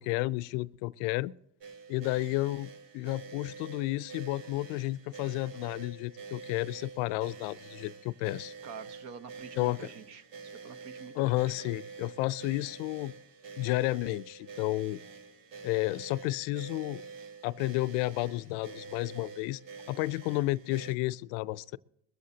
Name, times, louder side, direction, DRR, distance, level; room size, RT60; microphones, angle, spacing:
voice 1, 0.0-1.3 1.9-8.5 9.6-9.9 11.2-13.1 13.6-15.0 15.6-17.0 17.4-19.6 19.9-21.8, left 19 dB, 70° left, 0.5 m, -32 dB
sound 1, 1.6-21.0, right 5 dB, 75° right, 1.9 m, -47 dB
voice 2, 8.6-11.7, right 6 dB, 60° right, 1.2 m, -47 dB
21.0 x 14.5 x 2.8 m
supercardioid pair, 100°, 32 cm